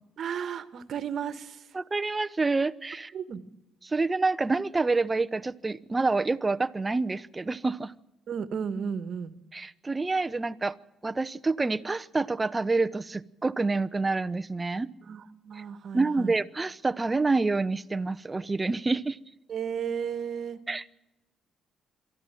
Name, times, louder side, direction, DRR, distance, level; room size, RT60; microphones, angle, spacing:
voice 1, 0.2-1.7 3.1-3.4 8.3-9.4 15.0-16.3 19.5-20.6, right 7 dB, 60° right, 13 dB, 1.4 m, -34 dB
voice 2, 1.7-3.1 3.8-7.9 9.5-10.8 11.0-14.9 15.9-19.2 20.7-20.9, right 3 dB, 20° right, 13 dB, 0.8 m, -27 dB
23.0 x 14.0 x 9.1 m, 0.98 s
cardioid pair, 90°, 0 cm